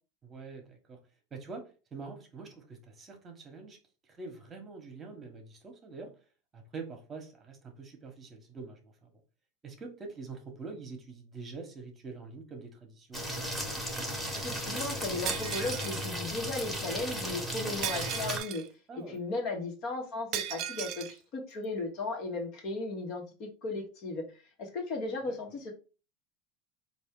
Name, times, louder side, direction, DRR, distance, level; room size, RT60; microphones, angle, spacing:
voice 1, 0.2-1.0 1.3-3.8 4.0-6.1 6.5-9.1 9.6-13.3 18.9-19.2 25.3-25.4, right 4 dB, 25° right, 4 dB, 1.2 m, -45 dB
sound 1, 13.1-18.4, equal, 5° left, 1.4 m, -35 dB
voice 2, 14.3-18.6 18.9-25.7, left 3 dB, 50° left, 2 dB, 1.4 m, -36 dB
Shatter, 15.3-16.1 17.8-18.7 20.3-21.1, right 12 dB, 55° right, 0.3 m, -36 dB
4.2 x 2.6 x 3.7 m, 0.34 s
supercardioid pair, 115°, 0 cm